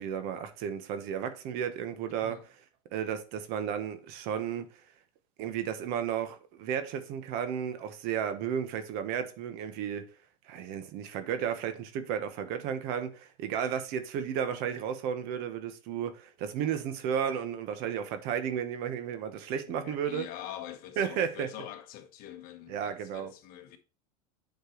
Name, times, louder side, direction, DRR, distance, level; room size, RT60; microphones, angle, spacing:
voice 1, 0.0-2.5 2.9-4.6 5.4-10.0 10.4-20.2 21.0-21.5 22.7-23.3, right 8 dB, 50° right, 1.1 m, -33 dB
voice 2, 19.7-23.8, left 12 dB, 45° left, 1.2 m, -44 dB
8.2 x 4.4 x 3.1 m
supercardioid pair, 135°, 20 cm